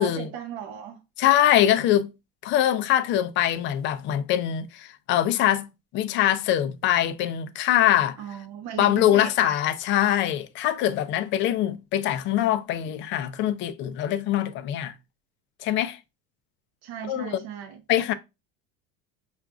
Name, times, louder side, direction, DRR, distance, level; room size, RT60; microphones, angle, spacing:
voice 1, 0.0-1.0 8.2-9.6 16.8-17.8, right 8 dB, 55° right, 0.6 m, -37 dB
voice 2, 1.2-2.1 2.4-5.7 5.9-8.2 8.8-14.9 15.6-16.0 17.1-17.4 17.9-18.1, left 12 dB, 40° left, 0.4 m, -23 dB
5.9 x 2.4 x 2.3 m
supercardioid pair, 135°, 31 cm